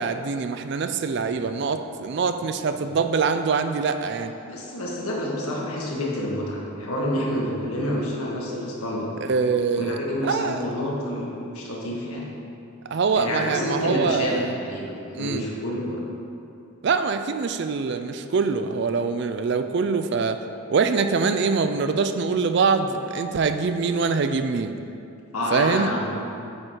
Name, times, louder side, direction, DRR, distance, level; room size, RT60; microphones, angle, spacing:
voice 1, 0.0-4.3 9.3-10.0 10.2-10.6 12.9-14.5 15.1-15.4 16.8-20.4 20.7-24.7 25.5-25.9, right 5 dB, 50° right, 9 dB, 0.3 m, -24 dB
voice 2, 4.4-9.1 9.8-12.3 13.1-16.0 25.3-26.1, left 1 dB, 85° left, -3 dB, 1.5 m, -28 dB
8.4 x 5.0 x 4.6 m, 2.7 s
head